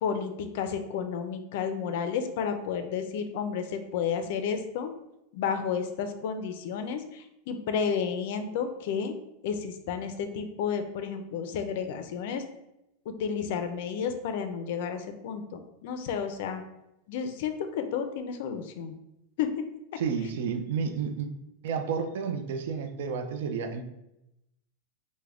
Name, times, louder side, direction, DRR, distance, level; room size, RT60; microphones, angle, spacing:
voice 1, 0.0-4.9 5.3-9.2 9.4-12.4 13.1-16.6 17.1-18.9 19.4-19.7, left 6 dB, 60° left, 8 dB, 0.4 m, -31 dB
voice 2, 20.0-21.3 21.6-23.8, right 6 dB, 75° right, 6 dB, 0.4 m, -31 dB
3.5 x 2.1 x 3.3 m, 0.87 s
supercardioid pair, 155°, 0 cm